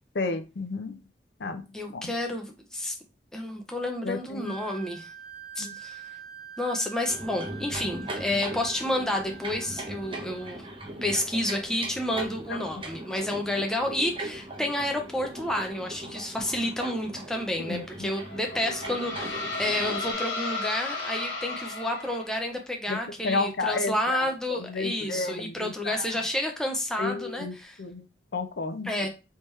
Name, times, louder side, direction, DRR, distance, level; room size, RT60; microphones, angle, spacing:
voice 1, 0.1-1.0 1.4-1.6 1.9-2.1 4.0-4.4 5.6-5.7 12.5-12.8 17.6-18.1 22.9-23.0 23.2-26.1 27.0-28.0 28.3-28.9, left 3 dB, 65° left, 0.5 m, -32 dB
voice 2, 1.7-3.0 3.3-5.1 5.6-6.0 6.6-10.6 11.0-27.8 28.8-29.1, left 1 dB, 5° left, 0.6 m, -30 dB
Wind instrument woodwind instrument, 4.4-10.6, right 7 dB, 45° right, 1.1 m, -45 dB
sound 1, 7.1-20.1, right 1 dB, 30° right, 0.8 m, -39 dB
sound 2, 18.2-22.5, left 3 dB, 80° left, 1.1 m, -34 dB
3.5 x 2.9 x 3.1 m
head